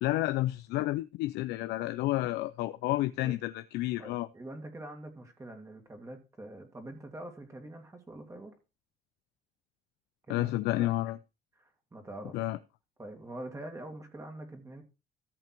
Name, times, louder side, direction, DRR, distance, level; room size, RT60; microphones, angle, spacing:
voice 1, 0.0-4.3 10.3-11.2 12.3-12.6, left 16 dB, 90° left, 0.5 m, -30 dB
voice 2, 4.0-8.5 10.3-10.5 10.8-10.9 11.5-12.5 13.0-14.8, right 1 dB, 20° right, 2.3 m, -45 dB
14.0 x 5.9 x 4.5 m
cardioid pair, 110°, 17 cm